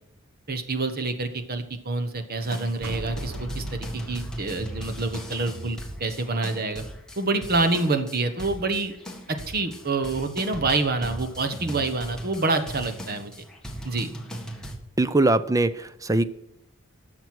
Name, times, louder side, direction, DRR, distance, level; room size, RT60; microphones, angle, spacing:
voice 1, 0.5-6.8 7.2-8.9 9.3-13.3 13.8-14.1, right 3 dB, 50° right, 8 dB, 1.3 m, -27 dB
sound 1, 2.4-14.8, right 1 dB, 5° left, 1.7 m, -39 dB
sound 2, 2.8-6.2, equal, 85° right, 1.3 m, -38 dB
voice 2, 15.0-16.2, right 2 dB, 15° right, 14 dB, 0.5 m, -21 dB
12.0 x 6.7 x 6.2 m, 0.81 s
head